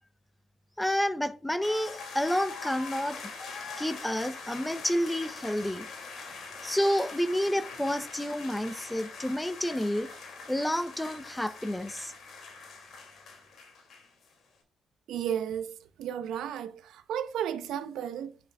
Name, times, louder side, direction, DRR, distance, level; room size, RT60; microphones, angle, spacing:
voice 1, 0.8-3.2 3.8-5.9 6.6-10.1 10.5-12.1, equal, 5° left, 0.6 m, -29 dB
sound 1, 1.6-14.3, left 4 dB, 65° left, 2.4 m, -43 dB
voice 2, 15.1-18.4, right 9 dB, 80° right, 0.7 m, -34 dB
10.0 x 6.1 x 2.3 m
cardioid pair, 90°, 0 cm